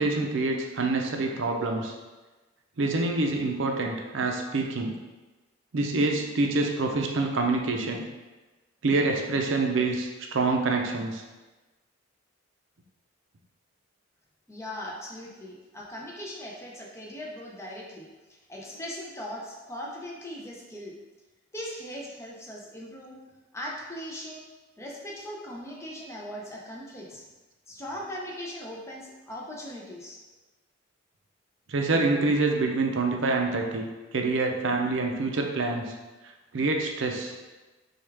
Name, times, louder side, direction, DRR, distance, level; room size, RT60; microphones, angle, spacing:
voice 1, 0.0-1.9 2.8-5.0 5.7-8.0 8.8-11.2 31.7-33.9 34.1-35.9 36.5-37.3, right 3 dB, 60° right, 2 dB, 0.5 m, -26 dB
voice 2, 14.5-18.1 18.5-20.9 21.5-23.2 23.5-24.4 24.8-27.2 27.7-30.2, equal, 15° left, -2 dB, 0.5 m, -39 dB
6.3 x 2.4 x 3.4 m, 1.2 s
head